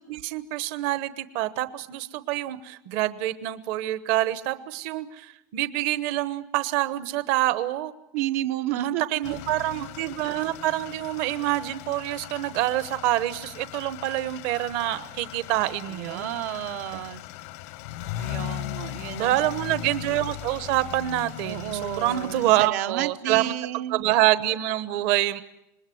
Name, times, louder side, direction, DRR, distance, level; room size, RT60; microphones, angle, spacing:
voice 1, 0.0-7.9 8.8-16.3 16.9-17.0 19.2-23.5 23.9-25.4, right 15 dB, 55° right, 13 dB, 1.1 m, -26 dB
voice 2, 8.1-9.3 15.9-17.2 18.2-19.4 21.4-24.0, right 13 dB, 80° right, 7 dB, 1.1 m, -31 dB
sound 1, 9.2-22.7, left 14 dB, 65° left, 0.9 m, -38 dB
26.5 x 21.0 x 7.7 m, 0.85 s
cardioid pair, 170°, 8 cm